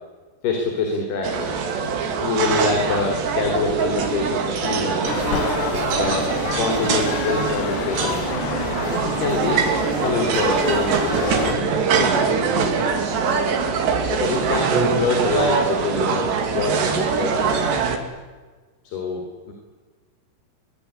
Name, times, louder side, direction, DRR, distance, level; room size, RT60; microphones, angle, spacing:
voice 1, 0.4-1.6 2.2-5.2 5.9-8.2 8.9-9.6 10.0-12.5 14.1-17.7 18.9-19.5, left 4 dB, 65° left, 2 dB, 5.9 m, -25 dB
sound 1, 1.2-18.0, right 5 dB, 75° right, 4.9 m, -23 dB
sound 2, 5.0-11.5, left 12 dB, 85° left, 3.3 m, -29 dB
25.0 x 22.5 x 9.8 m, 1.3 s
omnidirectional pair, 5.0 m